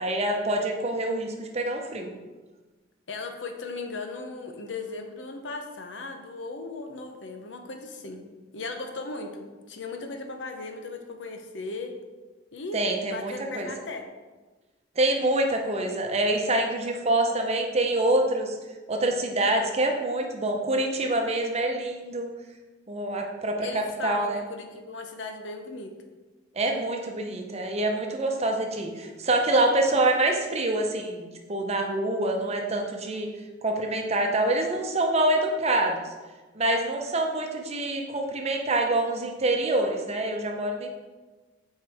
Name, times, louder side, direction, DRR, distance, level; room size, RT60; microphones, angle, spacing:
voice 1, 0.0-2.1 12.7-13.7 15.0-18.6 18.9-22.3 22.9-24.4 26.5-33.3 33.6-36.1 36.5-40.9, right 1 dB, 35° right, 3 dB, 0.8 m, -26 dB
voice 2, 3.1-8.3 8.5-11.9 12.5-12.8 13.1-14.1 23.6-25.9, left 3 dB, 70° left, 5 dB, 0.8 m, -37 dB
8.0 x 4.6 x 3.5 m, 1.3 s
head